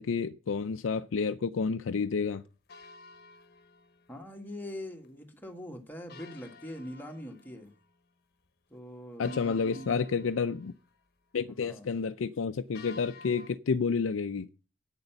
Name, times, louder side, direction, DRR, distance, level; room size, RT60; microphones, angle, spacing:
voice 1, 0.0-2.4 9.2-10.7 11.3-14.5, left 5 dB, 85° left, 0.5 m, -30 dB
sound 1, 2.7-4.4 4.7-4.8 5.0-5.1 6.1-8.0 8.4-8.5 9.2-11.0 12.7-13.5, left 4 dB, 55° left, 1.0 m, -52 dB
voice 2, 4.1-7.7 8.7-10.0 11.6-12.0, left 1 dB, 10° left, 1.7 m, -43 dB
8.9 x 6.7 x 7.0 m
head